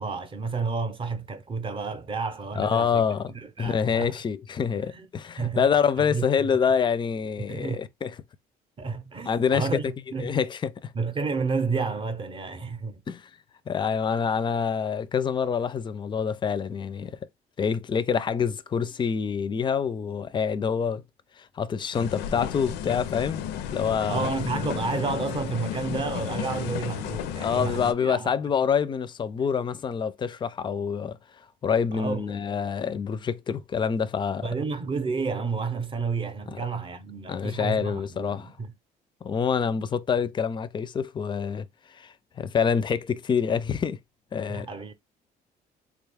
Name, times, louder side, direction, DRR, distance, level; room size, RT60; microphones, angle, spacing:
voice 1, 0.0-4.1 4.9-5.0 5.4-5.7 6.0-6.5 7.5-7.8 8.8-9.8 10.1-10.3 10.9-13.0 24.1-28.3 31.9-32.4 34.4-38.7 44.5-44.9, right 4 dB, 30° right, 0.6 m, -31 dB
voice 2, 2.6-3.3 3.6-8.1 9.3-9.7 10.2-10.9 13.1-13.2 13.7-17.2 17.6-21.0 21.4-23.4 23.7-24.3 27.4-31.2 31.6-34.5 36.5-36.6 37.3-38.5 39.2-44.0 44.3-44.7, left 6 dB, 30° left, 0.4 m, -26 dB
sound 1, 21.9-27.9, left 10 dB, 90° left, 0.5 m, -33 dB
3.6 x 2.3 x 3.4 m
cardioid pair, 110°, 17 cm